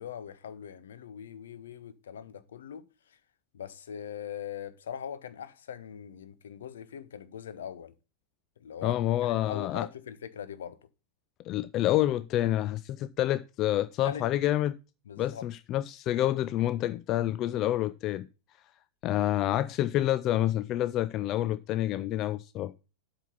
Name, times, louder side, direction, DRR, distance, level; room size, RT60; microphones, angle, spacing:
voice 1, 0.0-3.2 3.5-7.9 8.6-10.8 14.0-14.2 15.1-15.5, left 8 dB, 65° left, 0.8 m, -41 dB
voice 2, 8.8-9.9 11.4-14.8 15.2-18.3 19.0-22.7, left 13 dB, 35° left, 0.4 m, -28 dB
8.1 x 5.9 x 5.7 m
figure-of-eight pair, 90°, 0 cm